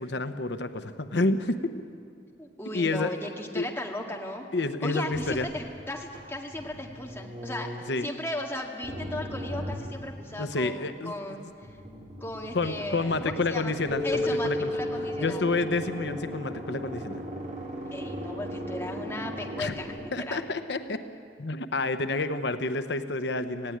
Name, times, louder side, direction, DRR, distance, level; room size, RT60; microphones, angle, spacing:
voice 1, 0.0-1.7 2.7-3.1 3.5-3.6 4.5-5.5 7.9-8.1 10.4-11.1 11.4-11.5 12.5-14.7 15.2-17.2 19.6-19.7 20.1-21.0 21.4-23.8, left 3 dB, 75° left, 10 dB, 0.8 m, -29 dB
voice 2, 2.4-4.5 4.8-11.7 12.2-13.8 14.0-15.5 17.9-20.4, left 1 dB, 15° left, 0 dB, 2.0 m, -36 dB
sound 1, 5.1-8.2 8.8-10.6 11.6-20.1, equal, 45° right, 2.9 m, -39 dB
Keyboard (musical), 13.9-17.1, left 2 dB, 40° left, 1.8 m, -33 dB
18.5 x 16.0 x 10.0 m, 2.3 s
head